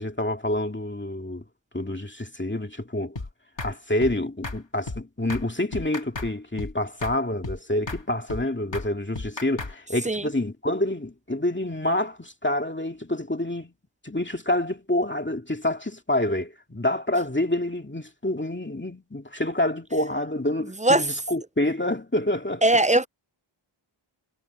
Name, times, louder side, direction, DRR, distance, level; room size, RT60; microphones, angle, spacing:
voice 1, 0.0-1.4 1.7-3.2 3.6-13.7 14.0-22.8, left 1 dB, 20° left, 2.3 m, -27 dB
sound 1, 3.2-3.3 3.6-3.7 4.0-4.2 4.4-4.6 4.9-5.0 5.3-5.5 5.7-6.3 6.6-6.7 7.0-7.2 7.4-7.6 7.9-8.0 8.3-8.4 8.7-8.9 9.2-9.7, left 3 dB, 60° left, 2.7 m, -33 dB
voice 2, 22.6-23.1, right 2 dB, 15° right, 0.4 m, -19 dB
wide cardioid pair, 40°, 49 cm